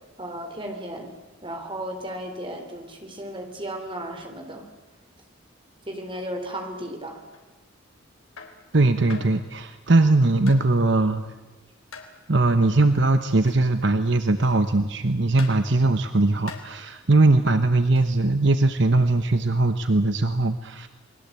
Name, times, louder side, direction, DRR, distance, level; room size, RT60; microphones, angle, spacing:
voice 1, 0.2-1.1 1.4-4.6 5.9-7.2, right 1 dB, 25° right, 4 dB, 3.8 m, -34 dB
sound 1, 7.3-7.5 8.4-8.6 9.1-9.4 10.5-10.7 11.9-12.2 13.4-13.7 14.4-14.7 15.4-15.7 16.5-16.8 17.9-18.2, left 4 dB, 75° left, 3.9 m, -43 dB
voice 2, 8.7-11.2 12.3-20.9, right 2 dB, 55° right, 9 dB, 1.1 m, -20 dB
29.0 x 20.5 x 8.3 m, 1.2 s
head